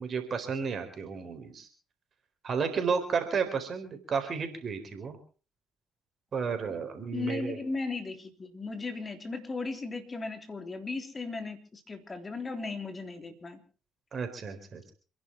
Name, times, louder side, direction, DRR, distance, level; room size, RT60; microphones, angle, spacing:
voice 1, 0.0-1.7 2.4-5.2 6.3-7.6 14.1-14.9, right 6 dB, 45° right, 7 dB, 4.1 m, -32 dB
voice 2, 7.1-13.6, left 3 dB, 30° left, 7 dB, 3.5 m, -36 dB
28.0 x 11.0 x 4.5 m, 0.38 s
hypercardioid pair, 50°, 0 cm